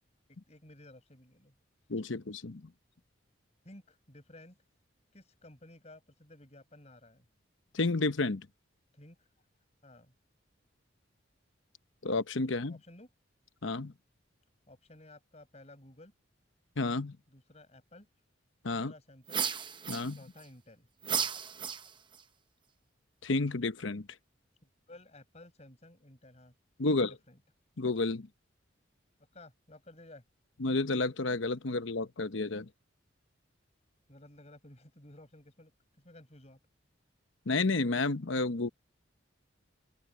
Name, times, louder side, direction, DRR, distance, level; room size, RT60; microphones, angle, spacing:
voice 1, 0.5-1.5 3.6-4.6 5.1-7.3 8.9-9.3 9.8-10.1 12.7-13.1 14.7-16.1 17.3-18.1 18.7-19.4 20.2-20.9 24.9-26.5 26.8-27.4 29.3-30.2 34.1-35.7 36.0-36.6, left 1 dB, 35° left, 5.5 m, -54 dB
voice 2, 1.9-2.6 7.7-8.5 12.0-12.8 13.6-13.9 16.8-17.2 18.6-18.9 19.9-20.2 23.2-24.1 26.8-27.1 27.8-28.3 30.6-32.7 37.5-38.7, left 3 dB, 75° left, 1.0 m, -31 dB
sound 1, 19.3-20.4 21.0-22.2, right 7 dB, 25° right, 0.9 m, -34 dB
open air
head